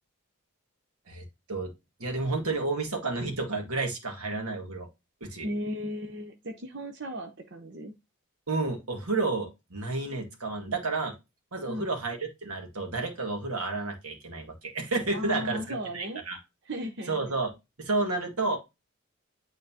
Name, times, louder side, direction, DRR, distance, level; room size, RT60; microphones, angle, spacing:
voice 1, 1.1-1.7 2.0-4.9 5.2-5.5 8.5-11.1 11.5-16.4 17.1-17.5 17.8-18.6, right 3 dB, 85° right, 1.9 m, -31 dB
voice 2, 5.4-7.9 11.7-11.9 15.1-16.2 16.6-17.4, equal, 50° right, 0.8 m, -36 dB
9.1 x 3.9 x 2.8 m
head